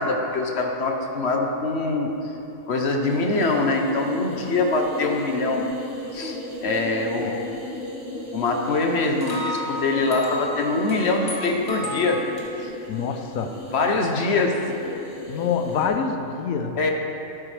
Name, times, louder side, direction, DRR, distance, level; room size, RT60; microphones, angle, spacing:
voice 1, 0.0-2.1 2.7-5.7 6.1-7.5 8.3-12.2 12.6-12.7 13.7-14.5 16.8-16.9, left 3 dB, 55° left, 2 dB, 1.1 m, -23 dB
sound 1, 3.0-15.9, left 2 dB, 45° right, 2.1 m, -37 dB
sound 2, 8.7-12.4, equal, 40° left, 1.5 m, -33 dB
voice 2, 12.9-13.5 15.3-16.8, left 6 dB, 90° left, 6 dB, 1.1 m, -26 dB
11.0 x 9.5 x 3.3 m, 3.0 s
omnidirectional pair, 1.4 m